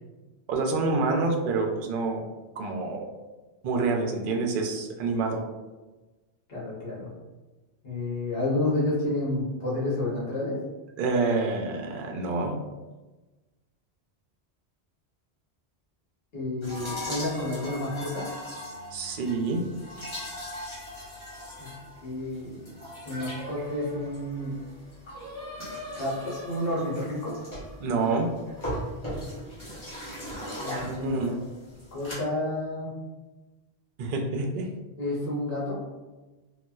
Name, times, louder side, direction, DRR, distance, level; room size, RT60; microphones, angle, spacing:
voice 1, 0.5-2.2 2.6-3.0 3.6-5.4 11.0-12.6 18.9-19.6 27.8-28.3 30.9-31.4 34.0-34.7, right 3 dB, 60° right, 2 dB, 0.6 m, -27 dB
voice 2, 6.5-7.1 7.8-10.6 16.3-18.3 21.6-21.7 22.0-22.7 23.0-24.5 25.9-27.4 30.6-31.2 31.9-32.9 35.0-35.8, left 1 dB, 65° left, -6 dB, 1.1 m, -30 dB
sound 1, 16.6-32.2, equal, 30° left, 1.0 m, -40 dB
Singing, 23.4-28.7, left 1 dB, 20° right, 0.8 m, -43 dB
4.0 x 2.2 x 2.3 m, 1.2 s
omnidirectional pair, 1.1 m